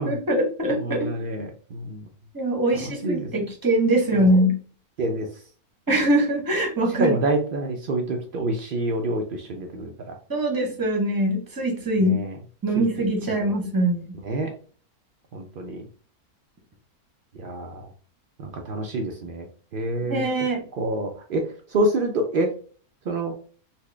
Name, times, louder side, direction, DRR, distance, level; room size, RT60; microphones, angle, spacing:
voice 1, 0.0-1.1 2.3-4.6 5.9-7.2 10.3-12.2 12.6-14.2 20.1-20.6, right 1 dB, 20° right, 1 dB, 0.6 m, -22 dB
voice 2, 0.7-2.0 3.0-3.3 4.1-4.3 5.0-5.3 7.0-10.2 12.0-12.3 12.8-13.5 14.2-14.5 15.3-15.8 17.4-17.9 18.4-19.5 19.7-20.2 20.7-22.5 23.1-23.3, right 2 dB, 85° right, 2 dB, 0.4 m, -27 dB
4.3 x 2.0 x 3.2 m, 0.42 s
omnidirectional pair, 1.6 m